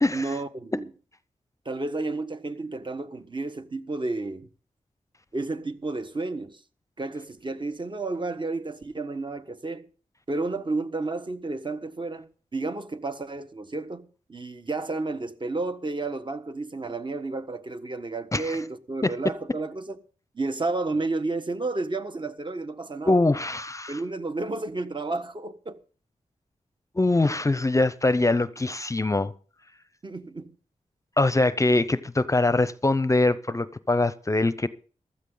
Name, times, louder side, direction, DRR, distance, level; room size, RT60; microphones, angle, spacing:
voice 1, 0.1-0.9 1.6-4.5 5.3-6.6 7.0-9.8 10.3-20.0 20.3-23.2 23.9-25.8 30.0-30.5, right 3 dB, 40° right, 1.3 m, -31 dB
voice 2, 23.1-24.0 27.0-29.3 31.2-34.7, left 2 dB, 25° left, 0.6 m, -23 dB
15.5 x 13.0 x 3.9 m
wide cardioid pair, 75°, 13 cm